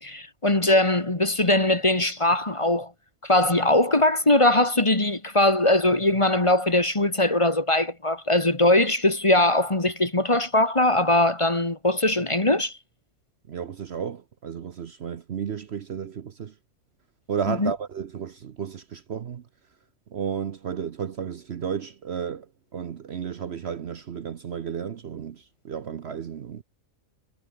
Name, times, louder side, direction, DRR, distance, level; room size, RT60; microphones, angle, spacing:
voice 1, 0.0-2.9 3.2-12.7 17.5-17.7, left 1 dB, 20° left, 1.7 m, -21 dB
voice 2, 13.5-16.5 17.3-19.4 20.1-22.5 22.7-26.6, right 7 dB, 55° right, 1.0 m, -33 dB
omnidirectional pair, 1.5 m